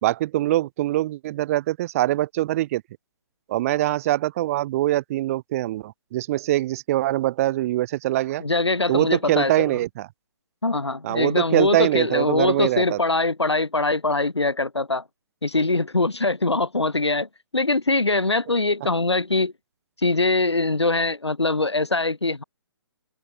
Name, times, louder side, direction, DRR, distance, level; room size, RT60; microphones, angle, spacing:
voice 1, 0.0-2.8 3.5-8.4 8.9-10.1 11.0-13.0, right 15 dB, 35° right, 1.6 m, -23 dB
voice 2, 8.4-9.7 10.6-15.0 15.4-19.5 20.0-22.4, left 2 dB, 80° left, 6.3 m, -23 dB
open air
figure-of-eight pair, 135°, 14 cm